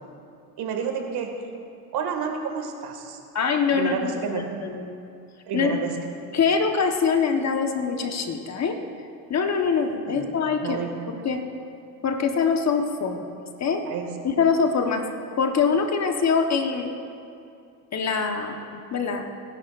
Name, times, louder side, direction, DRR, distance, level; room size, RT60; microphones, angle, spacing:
voice 1, 0.6-1.3 1.9-3.2 3.7-4.5 5.5-5.9 10.1-10.3 10.6-10.9 13.9-14.1, right 7 dB, 50° right, 3 dB, 2.2 m, -30 dB
voice 2, 3.3-4.9 5.5-5.8 6.3-8.8 9.3-10.8 11.1-11.4 12.0-13.2 13.6-13.8 14.2-15.1 15.4-16.9 17.9-18.6 18.9-19.3, left 5 dB, 35° left, 5 dB, 1.3 m, -24 dB
25.0 x 11.0 x 2.6 m, 2.5 s
hypercardioid pair, 80°, 48 cm